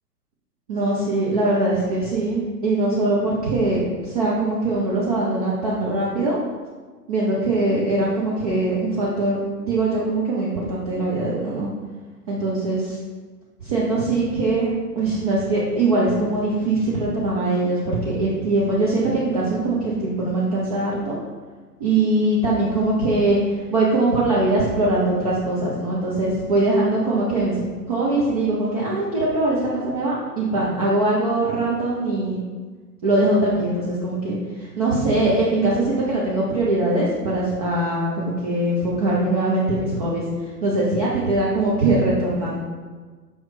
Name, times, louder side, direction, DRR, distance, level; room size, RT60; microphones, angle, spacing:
voice 1, 0.7-6.4 7.1-11.7 12.3-13.0 13.6-21.2 21.8-23.4 23.7-27.5 27.9-32.4 33.0-40.3 40.6-42.6, right 2 dB, 25° right, -6 dB, 0.4 m, -22 dB
5.3 x 3.1 x 3.1 m, 1.4 s
figure-of-eight pair, 110°, 49 cm